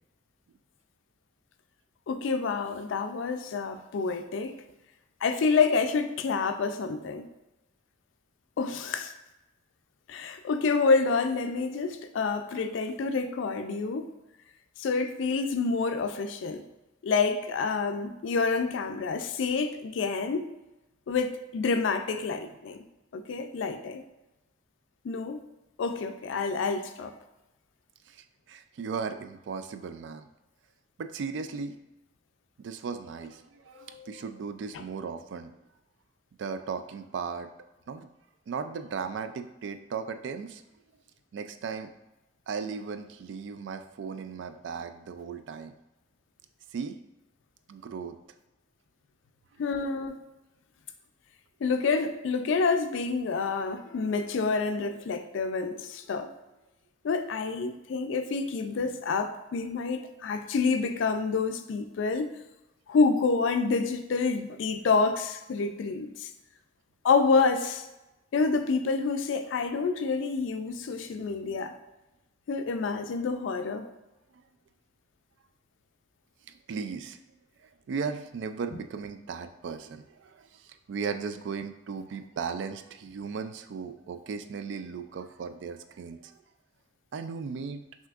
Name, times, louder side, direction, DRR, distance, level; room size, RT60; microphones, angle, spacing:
voice 1, 2.1-4.6 5.2-7.3 8.6-9.1 10.1-14.1 14.8-16.6 17.0-20.5 21.1-22.8 23.1-24.0 25.0-25.4 25.8-27.1 33.7-34.1 34.7-34.8 49.6-50.2 51.6-56.3 57.0-62.3 62.9-66.3 67.0-67.9 68.3-71.7 72.5-73.9, left 4 dB, 75° left, 8 dB, 0.4 m, -28 dB
voice 2, 28.1-30.3 31.0-31.8 32.6-35.5 36.4-37.5 37.9-38.1 38.5-40.6 41.3-41.9 42.5-45.7 46.7-47.0 47.7-48.2 74.3-74.4 76.7-77.2 77.9-80.6 80.9-86.4 87.1-87.8, right 5 dB, 65° right, 9 dB, 0.3 m, -36 dB
5.8 x 2.7 x 2.4 m, 0.97 s
head